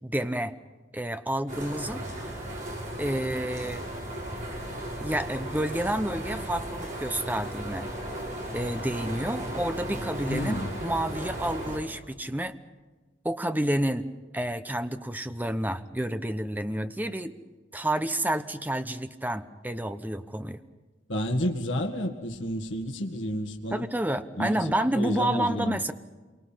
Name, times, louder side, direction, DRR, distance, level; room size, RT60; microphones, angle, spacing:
voice 1, 0.0-0.5 0.9-2.0 3.0-3.9 5.0-7.9 8.5-12.6 13.2-14.1 14.3-17.3 17.7-20.6 23.7-25.9, right 1 dB, 10° right, 9 dB, 0.9 m, -29 dB
sound 1, 1.5-11.8, right 1 dB, 40° right, 6.7 m, -36 dB
voice 2, 10.3-10.7 21.1-23.9 24.4-25.9, equal, 80° left, 2 dB, 1.9 m, -31 dB
27.0 x 24.0 x 5.7 m, 1.3 s
head